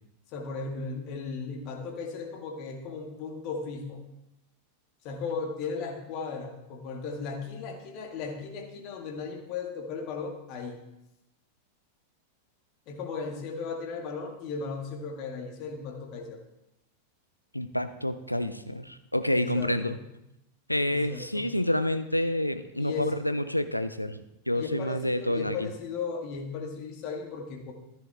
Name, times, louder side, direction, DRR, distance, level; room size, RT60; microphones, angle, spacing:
voice 1, 0.3-4.0 5.0-10.8 12.9-16.4 19.3-20.0 20.9-21.5 22.8-23.2 24.5-27.7, left 4 dB, 40° left, 2 dB, 2.2 m, -36 dB
voice 2, 17.5-20.0 20.7-25.6, left 1 dB, 90° left, 10 dB, 0.6 m, -28 dB
14.0 x 10.5 x 3.6 m, 0.88 s
figure-of-eight pair, 90°, 0 cm